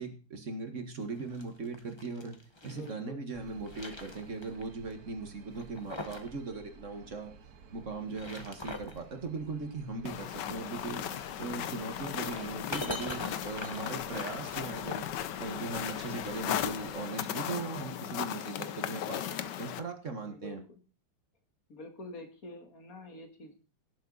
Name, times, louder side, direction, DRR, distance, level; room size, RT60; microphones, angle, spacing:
voice 1, 0.0-2.4 2.6-7.3 7.7-11.0 11.4-15.1 15.4-20.6, right 3 dB, 40° right, 6 dB, 1.9 m, -39 dB
sound 1, 1.1-2.9 3.4-4.6 4.9-5.0 5.5-6.3 6.6-6.7 7.9-9.0 10.9-15.0, left 2 dB, 15° left, 1.3 m, -43 dB
voice 2, 2.6-3.2 20.2-20.8 21.7-23.5, left 2 dB, 45° left, 5 dB, 2.4 m, -47 dB
sound 2, 3.3-17.0, right 5 dB, 55° right, 1.4 m, -55 dB
sound 3, 10.1-19.8, left 10 dB, 70° left, 1.4 m, -37 dB
17.5 x 7.8 x 4.1 m, 0.36 s
omnidirectional pair, 2.1 m